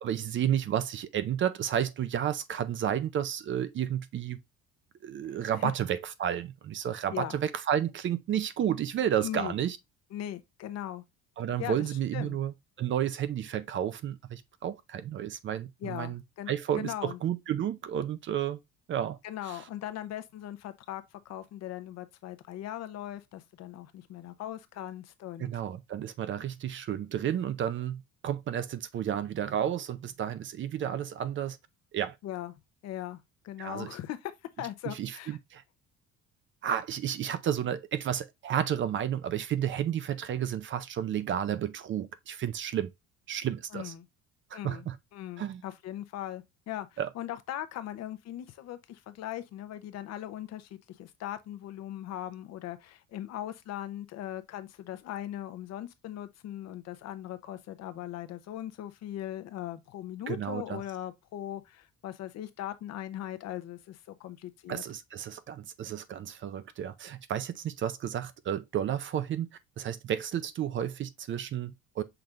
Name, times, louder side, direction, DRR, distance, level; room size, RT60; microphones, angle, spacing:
voice 1, 0.0-4.4 5.0-9.8 11.4-16.2 16.5-18.6 18.9-19.2 19.5-19.6 25.4-31.6 31.9-32.2 33.6-34.0 34.9-35.6 36.6-42.9 43.3-43.9 44.5-45.0 45.4-45.6 47.0-47.1 60.3-60.8 64.7-69.5 69.8-72.0, right 10 dB, 40° right, 0.5 m, -32 dB
voice 2, 9.2-9.5 10.1-11.0 11.6-12.4 15.8-17.2 19.2-25.5 32.2-32.5 32.8-34.3 34.6-35.4 43.7-44.1 44.5-44.9 45.1-64.8, left 12 dB, 55° left, 0.7 m, -39 dB
5.9 x 3.4 x 2.4 m
cardioid pair, 140°, 31 cm